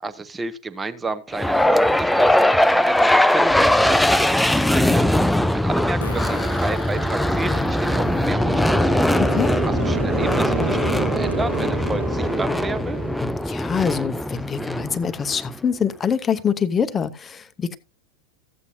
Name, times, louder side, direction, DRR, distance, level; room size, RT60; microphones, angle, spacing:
voice 1, 0.0-5.2 5.5-9.2 9.6-13.0, right 3 dB, 10° right, 0.8 m, -31 dB
sound 1, 1.3-15.5, left 1 dB, 5° left, 0.4 m, -20 dB
Fart, 3.3-3.4 6.0-8.3 8.9-9.0 10.3-10.4 10.8-10.9 11.3-11.5, left 3 dB, 80° left, 1.1 m, -38 dB
sound 2, 6.9-13.2, right 8 dB, 65° right, 0.5 m, -32 dB
voice 2, 9.2-9.5 13.2-17.8, left 7 dB, 20° left, 0.8 m, -25 dB
14.5 x 8.3 x 2.7 m
figure-of-eight pair, 90°, 0 cm